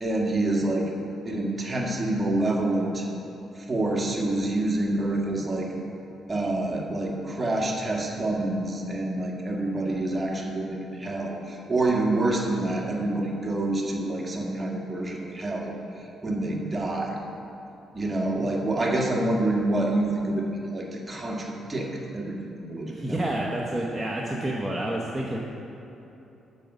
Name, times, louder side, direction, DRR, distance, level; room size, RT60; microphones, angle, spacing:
voice 1, 0.0-0.9 1.2-3.0 3.7-5.7 6.3-15.8 16.2-17.2 17.9-22.4 22.6-23.2, right 2 dB, 20° right, -1 dB, 1.6 m, -27 dB
voice 2, 22.9-25.4, right 1 dB, 5° right, -4 dB, 0.9 m, -29 dB
8.9 x 5.4 x 7.1 m, 3.0 s
cardioid pair, 90°, 0 cm